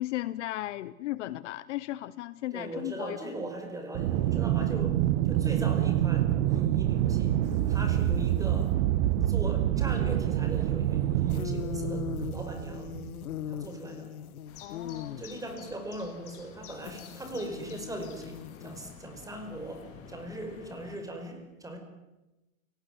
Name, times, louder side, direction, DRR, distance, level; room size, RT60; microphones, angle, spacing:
voice 1, 0.0-3.3 14.6-15.2, left 16 dB, 55° left, 17 dB, 1.0 m, -35 dB
voice 2, 2.5-7.4 7.7-8.8 9.3-12.9 13.5-14.1 15.2-21.8, right 1 dB, 10° right, 5 dB, 5.2 m, -39 dB
Aircraft, 3.9-13.4, right 12 dB, 45° right, 1.4 m, -27 dB
sound 1, 7.4-8.7 11.3-15.6 16.8-19.1, left 10 dB, 75° left, 2.0 m, -41 dB
sound 2, 14.5-21.0, left 7 dB, 30° left, 4.5 m, -50 dB
29.0 x 18.5 x 9.3 m, 1.0 s
hypercardioid pair, 140°, 43 cm